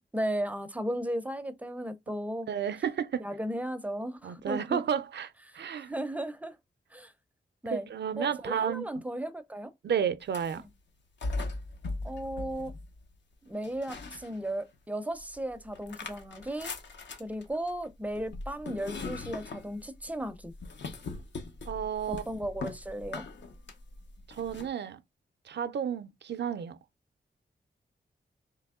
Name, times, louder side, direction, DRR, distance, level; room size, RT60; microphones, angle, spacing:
voice 1, 0.1-2.5 3.2-4.8 5.5-6.6 6.9-7.1 7.6-7.9 8.2-9.7 12.0-12.7 13.4-16.7 17.2-20.5 22.1-23.2, right 1 dB, 10° right, 0.4 m, -35 dB
voice 2, 2.5-3.3 4.2-5.9 7.7-8.9 9.8-10.6 21.7-22.2 24.3-25.0 25.5-26.8, right 8 dB, 70° right, 0.4 m, -32 dB
sound 1, 10.2-10.7 11.2-13.2 13.6-14.8 15.2-24.7, left 3 dB, 75° left, 0.8 m, -40 dB
3.3 x 2.9 x 3.5 m
wide cardioid pair, 140°, 18 cm